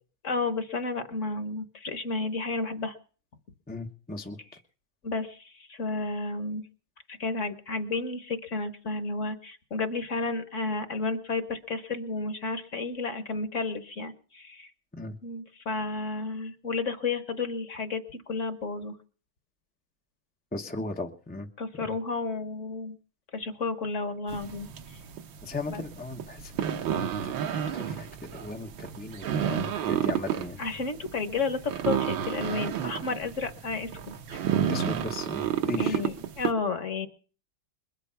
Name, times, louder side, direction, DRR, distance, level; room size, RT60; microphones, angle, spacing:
voice 1, 0.2-3.0 5.0-6.6 7.1-14.7 15.2-18.0 18.3-18.9 21.6-23.0 23.3-25.0 25.7-25.8 30.6-34.4 35.8-37.1, left 3 dB, 45° left, 9 dB, 1.2 m, -32 dB
voice 2, 3.7-4.4 14.9-15.2 20.5-21.5 25.4-30.6 34.7-36.0, left 2 dB, 10° left, 3 dB, 0.4 m, -37 dB
sound 1, 24.3-36.5, right 9 dB, 75° right, 1.7 m, -31 dB
22.0 x 8.2 x 5.7 m, 0.41 s
omnidirectional pair, 2.2 m